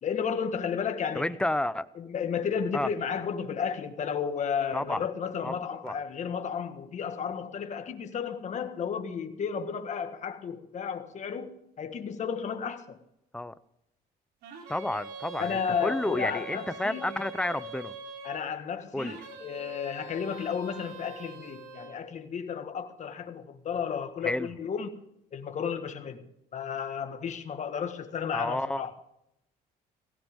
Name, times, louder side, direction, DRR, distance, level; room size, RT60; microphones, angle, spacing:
voice 1, 0.0-1.3 1.9-13.0 15.4-17.0 18.2-25.0 25.3-26.2 26.5-28.9, left 7 dB, 45° left, 1.6 m, -33 dB
voice 2, 1.1-1.9 2.7-2.9 4.7-5.0 5.4-5.6 5.8-6.0 13.3-13.5 14.7-17.9 18.9-19.2 24.2-24.5 28.3-28.8, left 1 dB, 5° left, 0.7 m, -30 dB
sound 1, 14.4-18.4 19.0-22.0, right 4 dB, 90° right, 3.4 m, -43 dB
17.0 x 16.0 x 3.6 m
cardioid pair, 110°, 17 cm